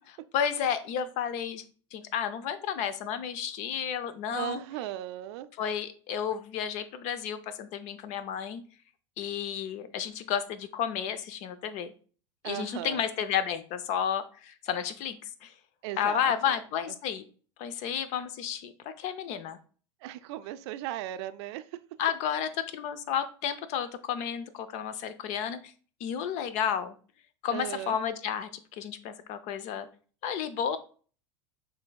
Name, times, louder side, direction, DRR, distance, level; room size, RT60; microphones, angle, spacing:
voice 1, 0.3-1.6 1.9-4.6 5.6-8.6 9.2-11.9 12.4-15.5 16.0-17.2 17.6-18.7 19.0-19.6 22.0-25.7 26.0-27.0 27.4-29.9 30.2-30.8, left 8 dB, 55° left, 12 dB, 0.5 m, -32 dB
voice 2, 4.3-5.5 12.4-13.0 15.8-16.6 16.9-17.0 20.0-21.8 27.5-28.0, right 14 dB, 65° right, 13 dB, 0.4 m, -37 dB
5.7 x 3.3 x 2.3 m, 0.41 s
hypercardioid pair, 100°, 15 cm